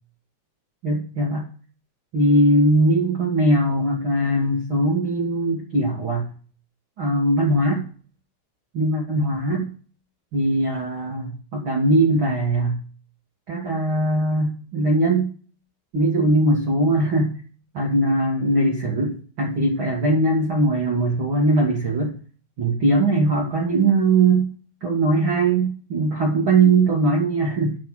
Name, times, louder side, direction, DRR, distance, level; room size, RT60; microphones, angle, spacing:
voice 1, 0.8-1.4 2.1-6.3 7.0-7.8 8.7-9.7 10.3-12.8 13.5-15.3 15.9-17.3 17.7-22.1 22.6-24.5 24.8-27.8, right 2 dB, 50° right, -1 dB, 1.5 m, -20 dB
11.5 x 5.3 x 6.2 m, 0.39 s
omnidirectional pair, 5.0 m